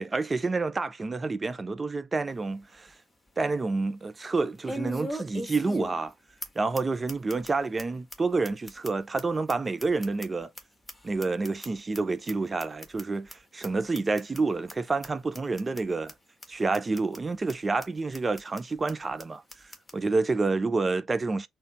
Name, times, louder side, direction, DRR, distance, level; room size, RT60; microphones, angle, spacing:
voice 1, 0.0-2.9 3.4-6.1 6.6-10.5 11.0-16.1 16.5-19.4 19.9-21.5, right 3 dB, 30° right, 0.6 m, -28 dB
sound 1, 2.3-2.4 2.9-3.0 4.7-6.1 6.4-6.5 6.7-6.8 7.1-7.5 7.8-7.9 8.1-8.2 8.4-10.6 10.9-12.0 12.3-12.4 12.6-13.0 13.3-13.4 13.6-13.7 13.9-14.4 14.7-14.8 15.0-15.1 15.3-15.8 16.1-16.2 16.4-16.5 16.7-17.2 17.5-17.6 17.8-17.9 18.1-18.6 18.9-19.0 19.2-19.3 19.5-19.9, equal, 15° left, 1.5 m, -38 dB
4.0 x 2.1 x 3.7 m
figure-of-eight pair, 45°, 0 cm